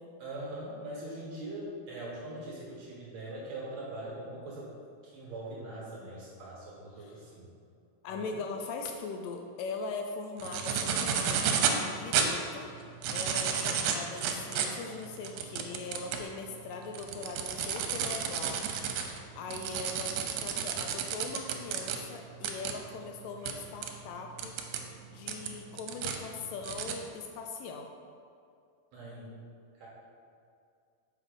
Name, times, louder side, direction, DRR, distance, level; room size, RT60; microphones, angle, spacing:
voice 1, 0.2-4.7 5.0-7.5 8.0-8.5 28.9-29.3 29.7-29.9, right 1 dB, 60° right, -5 dB, 2.2 m, -42 dB
voice 2, 8.0-12.7 13.1-18.6 19.4-20.2 20.4-24.5 25.1-27.9, left 4 dB, 80° left, 3 dB, 2.1 m, -40 dB
sound 1, 10.4-11.8 12.1-12.3 12.8-16.3 16.7-22.0 22.4-22.7 23.5-23.6 23.8-23.9 24.4-24.8 25.3-26.2 26.6-26.9, right 7 dB, 85° right, 2.5 m, -31 dB
6.0 x 5.7 x 5.2 m, 2.4 s
omnidirectional pair, 4.1 m